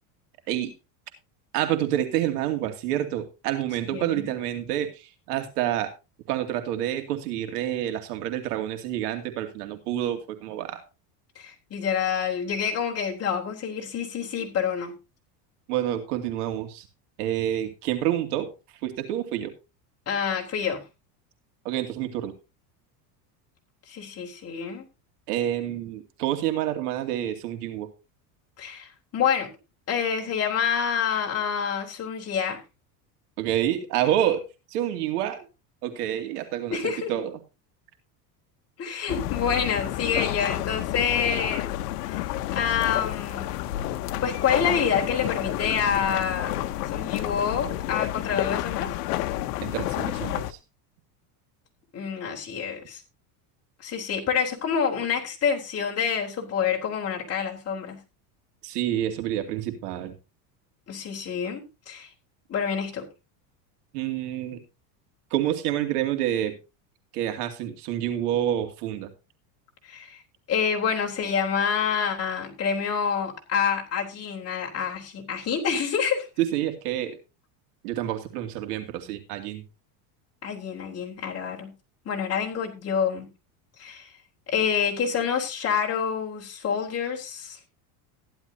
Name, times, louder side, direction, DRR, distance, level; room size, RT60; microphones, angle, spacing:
voice 1, 1.5-5.9 6.3-10.8 15.7-16.9 17.2-18.5 18.8-19.5 21.6-22.3 25.3-27.9 33.4-35.4 35.8-37.4 49.6-50.6 58.6-60.1 63.9-64.6 65.3-66.6 67.1-69.1 76.4-77.2 77.8-79.6, right 12 dB, 80° right, 7 dB, 2.6 m, -28 dB
voice 2, 3.9-4.4 11.4-14.9 20.1-20.8 23.9-24.9 28.6-29.5 29.9-32.6 36.7-37.1 38.8-41.7 42.0-43.5 44.2-46.5 46.9-48.9 51.9-53.0 53.8-58.0 60.9-62.1 62.5-63.1 69.8-70.2 70.5-76.3 80.4-81.7 82.1-83.3 83.8-84.1 84.5-87.6, left 7 dB, 30° left, 0 dB, 3.7 m, -27 dB
sound 1, 39.1-50.5, left 14 dB, 85° left, 0.9 m, -30 dB
15.0 x 11.5 x 2.8 m, 0.28 s
supercardioid pair, 125°, 46 cm